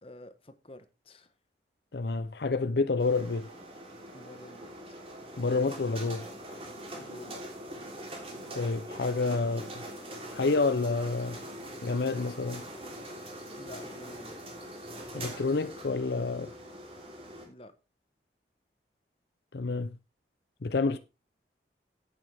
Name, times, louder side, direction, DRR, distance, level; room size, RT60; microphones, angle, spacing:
voice 1, 0.0-1.3 4.1-4.7 7.0-7.4 13.5-14.4 17.5-17.7, left 1 dB, 30° left, 1.2 m, -49 dB
voice 2, 1.9-3.5 5.4-6.2 8.5-9.8 10.3-11.4 11.8-12.6 15.1-16.5 19.5-19.9 20.6-21.0, left 3 dB, 70° left, 0.6 m, -29 dB
sound 1, 3.0-17.4, right 1 dB, 35° right, 3.4 m, -43 dB
10.5 x 9.1 x 3.5 m
head